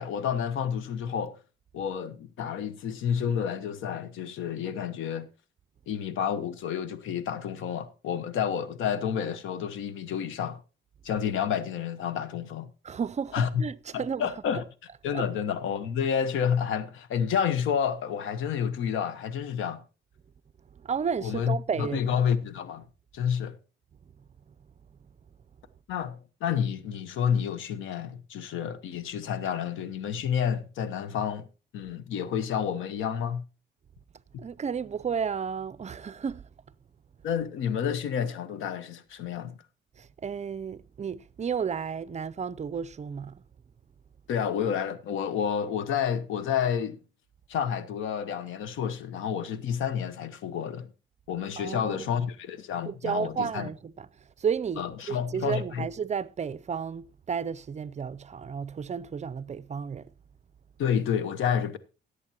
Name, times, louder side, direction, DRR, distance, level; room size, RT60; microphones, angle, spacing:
voice 1, 0.0-1.3 1.7-5.3 5.9-10.6 11.0-12.7 13.3-13.6 13.9-14.6 15.0-19.8 21.2-22.8 23.1-23.6 25.9-31.4 31.7-33.4 37.2-39.5 44.3-47.0 47.5-50.9 51.3-53.7 54.8-55.8 60.8-61.8, left 8 dB, 85° left, 1.2 m, -29 dB
voice 2, 12.8-14.3 15.1-15.3 20.8-22.2 34.4-36.5 40.0-43.4 51.6-52.1 52.9-54.1 54.4-60.1, right 6 dB, 35° right, 0.5 m, -32 dB
17.0 x 8.1 x 2.9 m
cardioid pair, 90°, 20 cm